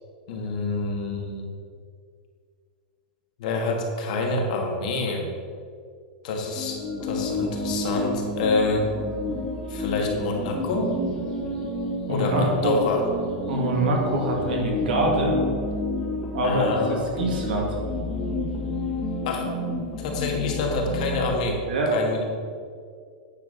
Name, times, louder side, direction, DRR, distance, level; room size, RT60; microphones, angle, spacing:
voice 1, 0.3-1.5 3.4-5.3 6.2-8.9 9.7-10.9 12.0-13.0 16.4-17.2 19.2-19.5 20.0-21.6 21.9-22.2, left 3 dB, 55° left, 1 dB, 1.5 m, -27 dB
sound 1, 6.6-21.3, left 1 dB, 20° left, 1.4 m, -30 dB
voice 2, 12.1-12.8 13.5-15.4 16.3-17.7 20.8-20.9 21.7-21.9, right 1 dB, 80° right, 0 dB, 2.1 m, -24 dB
9.0 x 4.6 x 5.2 m, 2.2 s
supercardioid pair, 170°, 5 cm